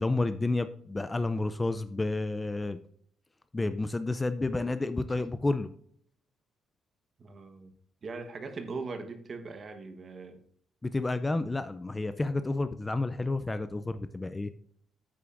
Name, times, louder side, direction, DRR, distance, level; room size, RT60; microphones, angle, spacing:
voice 1, 0.0-2.8 3.5-5.7 10.8-14.5, left 2 dB, 15° left, 11 dB, 0.4 m, -30 dB
voice 2, 7.2-7.7 8.0-10.4, right 4 dB, 40° right, 7 dB, 1.2 m, -40 dB
9.2 x 8.5 x 2.5 m, 0.63 s
cardioid pair, 130°, 0 cm